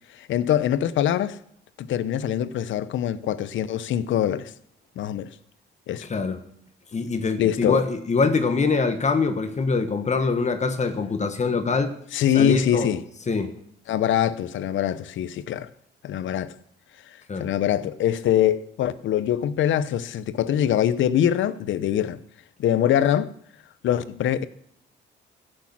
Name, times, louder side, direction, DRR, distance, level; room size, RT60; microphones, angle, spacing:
voice 1, 0.1-1.4 1.8-4.5 5.0-5.4 5.9-6.1 7.4-7.8 12.1-13.0 13.9-15.7 16.0-16.5 17.1-22.2 22.6-23.3 23.8-24.5, left 10 dB, 75° left, 0.8 m, -23 dB
voice 2, 6.1-6.4 6.9-11.9 12.3-12.9 13.3-13.5 17.3-17.5, left 4 dB, 35° left, 1.5 m, -24 dB
16.0 x 6.7 x 6.0 m
cardioid pair, 90°, 20 cm